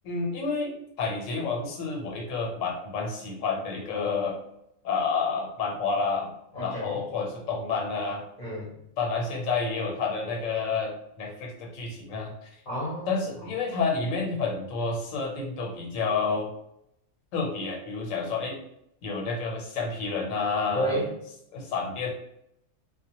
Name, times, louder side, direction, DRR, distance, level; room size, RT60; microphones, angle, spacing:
voice 1, 0.0-0.7 1.0-4.4 4.8-6.3 6.6-8.2 9.0-12.5 13.1-16.5 17.3-18.6 19.0-21.0 21.5-22.1, left 4 dB, 80° left, 0 dB, 1.0 m, -29 dB
voice 2, 6.5-7.0 8.4-8.8 12.7-13.5 20.7-21.1, right 1 dB, 45° left, -6 dB, 0.7 m, -31 dB
2.1 x 2.0 x 2.8 m, 0.77 s
omnidirectional pair, 1.3 m